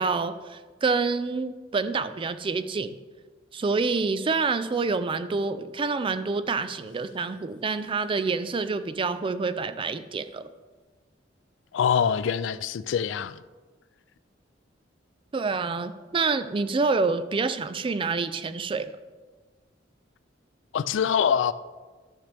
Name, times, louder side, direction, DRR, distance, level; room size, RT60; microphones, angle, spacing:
voice 1, 0.0-2.9 3.5-10.5 15.3-18.9, right 4 dB, 30° right, 0.4 m, -27 dB
voice 2, 11.7-13.4 20.7-21.5, left 7 dB, 75° left, 0.3 m, -24 dB
12.0 x 6.5 x 3.4 m
head